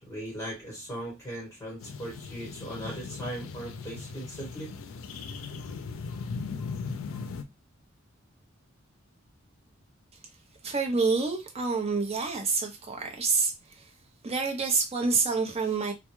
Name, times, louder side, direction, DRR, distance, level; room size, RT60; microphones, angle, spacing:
voice 1, 0.0-4.7, right 1 dB, 15° left, 1.0 m, -38 dB
sound 1, 1.8-7.4, left 5 dB, 80° left, 0.4 m, -38 dB
voice 2, 10.6-13.5 14.2-15.9, right 4 dB, 30° right, 0.6 m, -27 dB
2.2 x 2.1 x 3.0 m
head